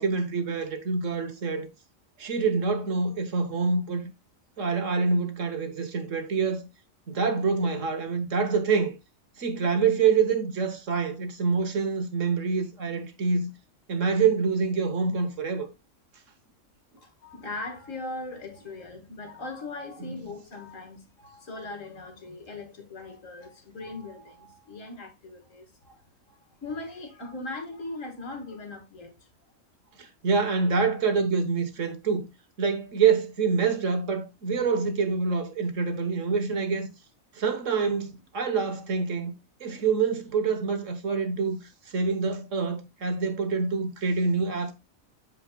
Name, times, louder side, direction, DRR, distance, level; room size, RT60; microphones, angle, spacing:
voice 1, 0.0-1.7 2.2-4.1 4.6-6.7 7.1-8.9 9.4-13.5 13.9-15.7 20.0-20.2 30.0-32.3 32.6-36.9 37.3-39.3 39.6-41.6 41.9-44.7, right 5 dB, 65° right, 1.5 m, -26 dB
voice 2, 17.0-29.3, left 2 dB, 65° left, 2.1 m, -40 dB
14.0 x 4.7 x 2.3 m
omnidirectional pair, 1.4 m